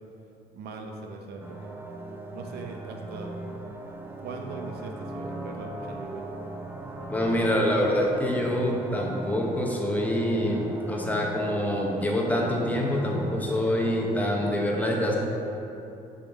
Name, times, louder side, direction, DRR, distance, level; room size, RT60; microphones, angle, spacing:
voice 1, 0.5-1.7 2.3-3.4 4.2-6.3, right 3 dB, 70° right, 2 dB, 0.7 m, -40 dB
sound 1, 1.4-14.5, right 2 dB, 10° right, 0.6 m, -39 dB
voice 2, 7.1-15.2, left 1 dB, 10° left, -1 dB, 0.9 m, -26 dB
9.9 x 3.8 x 3.5 m, 2.8 s
cardioid pair, 110°, 17 cm